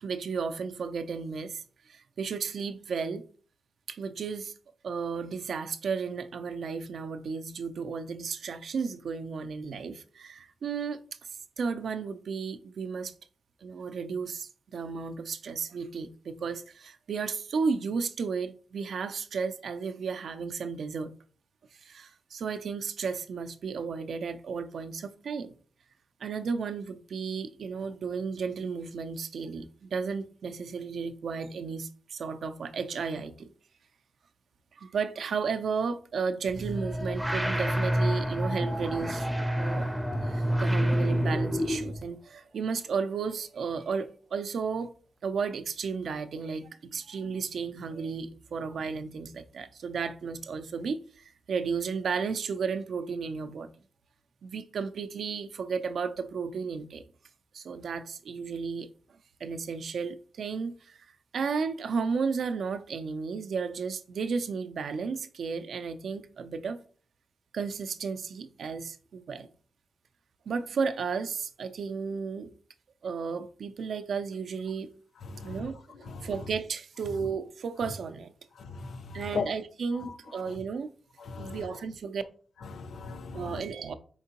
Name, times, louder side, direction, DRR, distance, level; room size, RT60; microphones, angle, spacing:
voice 1, 0.0-3.2 3.9-4.5 4.8-11.0 11.6-13.1 13.6-21.1 21.8-25.5 26.2-33.5 34.8-39.3 39.6-39.9 40.2-44.9 45.2-53.7 54.4-57.1 57.5-58.9 59.4-61.0 61.3-66.8 67.5-69.5 70.5-72.5 73.0-74.9 75.4-78.3 79.1-80.9 81.4-82.2 83.3-83.9, right 5 dB, 70° right, 0.4 m, -33 dB
sound 1, 36.5-42.0, equal, 5° right, 0.5 m, -28 dB
voice 2, 75.3-75.6 76.1-76.3 78.7-79.5 80.0-80.1 81.2-81.7 82.7-83.6, left 5 dB, 65° left, 0.5 m, -37 dB
4.3 x 3.7 x 2.8 m
cardioid pair, 110°, 0 cm